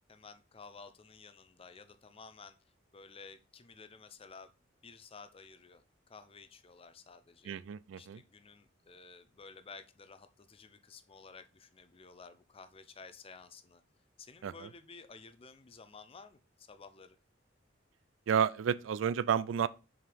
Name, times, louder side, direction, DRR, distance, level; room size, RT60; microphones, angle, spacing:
voice 1, 0.0-2.6 2.9-4.5 4.8-7.6 8.0-13.8 14.2-17.2, left 4 dB, 30° left, 0.5 m, -53 dB
voice 2, 7.5-8.2 14.4-14.5 18.3-19.7, right 8 dB, 85° right, 0.3 m, -31 dB
6.1 x 4.7 x 3.4 m
head